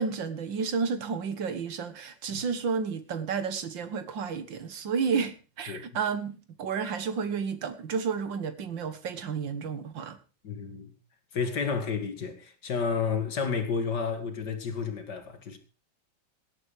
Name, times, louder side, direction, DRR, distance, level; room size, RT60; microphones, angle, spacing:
voice 1, 0.0-10.2, right 5 dB, 80° right, 2.2 m, -31 dB
voice 2, 10.4-10.9 11.3-15.6, left 5 dB, 65° left, 2.4 m, -31 dB
18.5 x 8.4 x 4.9 m
omnidirectional pair, 2.0 m